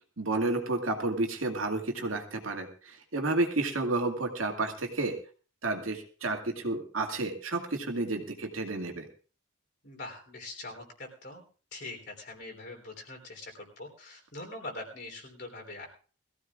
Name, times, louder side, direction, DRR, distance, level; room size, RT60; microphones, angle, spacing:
voice 1, 0.2-5.1 5.6-9.1, right 2 dB, 75° right, 3 dB, 2.2 m, -31 dB
voice 2, 9.8-11.4 11.7-15.9, left 2 dB, 50° left, 2 dB, 3.6 m, -43 dB
22.0 x 15.0 x 2.5 m, 0.39 s
head